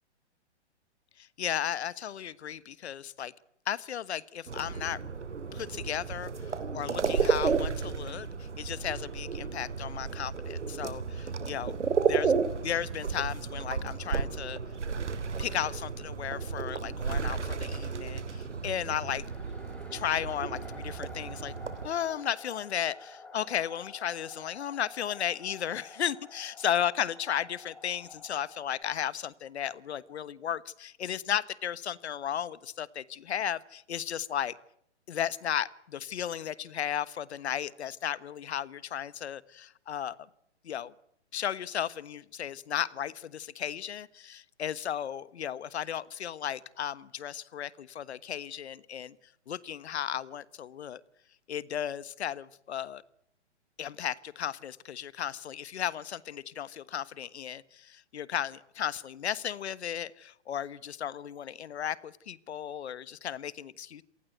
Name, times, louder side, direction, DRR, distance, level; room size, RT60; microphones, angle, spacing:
voice 1, 1.2-3.3 3.6-5.0 5.5-11.7 12.1-12.3 12.6-14.6 15.4-19.3 19.9-21.5 21.8-34.6 35.1-40.2 40.6-40.9 41.3-49.2 49.5-51.0 51.5-53.0 53.8-64.0, left 9 dB, 65° left, 19 dB, 1.4 m, -35 dB
sound 1, 4.5-21.9, right 5 dB, 85° right, 3.3 m, -33 dB
sound 2, 18.4-28.8, left 2 dB, 5° left, 3.7 m, -50 dB
27.0 x 19.0 x 8.1 m, 0.72 s
hypercardioid pair, 140°, 35 cm